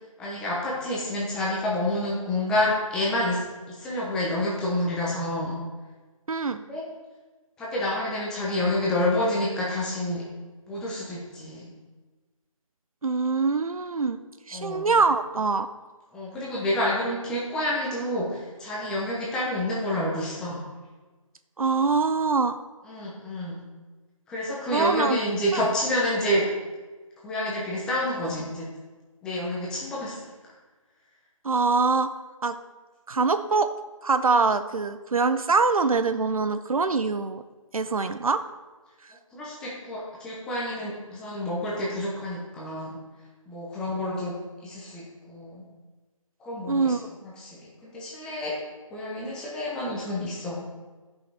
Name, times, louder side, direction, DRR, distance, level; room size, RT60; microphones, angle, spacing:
voice 1, 0.2-5.6 6.5-6.8 7.6-10.2 10.7-11.7 14.5-14.9 16.1-20.6 22.9-23.6 24.3-26.5 27.2-28.7 29.2-30.2 30.4-30.5 39.3-43.0 43.5-45.6 46.4-47.0 47.2-48.5 48.9-50.7, left 1 dB, 5° left, -5 dB, 0.7 m, -28 dB
voice 2, 6.3-6.6 13.0-14.2 14.5-15.7 21.6-22.6 24.7-25.2 25.5-25.6 31.4-32.1 32.4-32.6 33.1-33.7 34.0-37.4 37.7-38.4 46.7-47.1, right 4 dB, 80° right, 10 dB, 0.5 m, -24 dB
13.0 x 5.5 x 3.4 m, 1.3 s
figure-of-eight pair, 155°, 18 cm